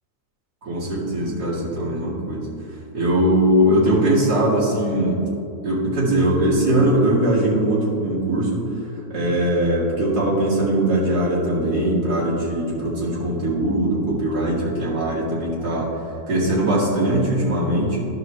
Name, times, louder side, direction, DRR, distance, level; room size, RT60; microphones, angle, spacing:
voice 1, 0.6-2.5 2.9-5.2 5.6-8.7 9.1-15.9 16.3-18.1, right 1 dB, 60° right, -8 dB, 2.8 m, -20 dB
12.0 x 6.1 x 3.2 m, 2.7 s
omnidirectional pair, 1.9 m